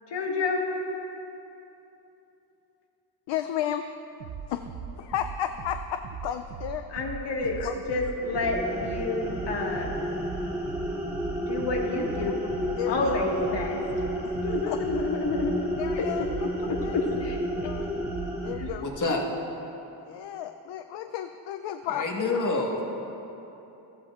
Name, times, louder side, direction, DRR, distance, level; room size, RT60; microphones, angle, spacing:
voice 1, 0.1-0.7 6.9-7.6 7.9-9.9 11.5-12.4 12.9-13.8 14.4-15.6 15.9-16.0 16.7-17.7 18.6-18.7, left 3 dB, 70° left, -1 dB, 1.8 m, -29 dB
voice 2, 3.3-3.8 4.5-4.7 5.0-6.8 7.6-7.7 12.8-13.1 14.2-14.3 14.7-14.8 15.8-16.2 16.6-17.0 17.6-18.8 20.1-22.3, left 10 dB, 90° left, 7 dB, 0.5 m, -33 dB
sound 1, 4.2-19.0, right 7 dB, 85° right, 0.7 m, -40 dB
sound 2, 8.2-18.5, equal, 5° right, 2.1 m, -32 dB
voice 3, 18.8-19.2 21.9-22.8, left 3 dB, 45° left, 0 dB, 1.6 m, -27 dB
15.0 x 13.5 x 2.4 m, 3.0 s
cardioid pair, 90°, 43 cm